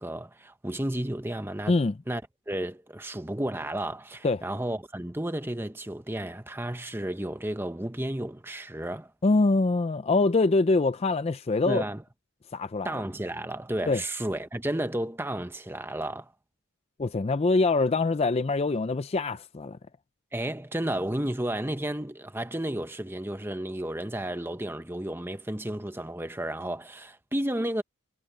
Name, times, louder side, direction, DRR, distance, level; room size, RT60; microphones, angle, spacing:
voice 1, 0.0-1.8 2.1-9.1 11.7-12.0 12.8-16.3 20.3-27.8, right 1 dB, 10° right, 1.0 m, -32 dB
voice 2, 9.2-11.8 12.5-13.0 13.9-14.0 17.0-19.8, left 3 dB, 30° left, 0.4 m, -24 dB
head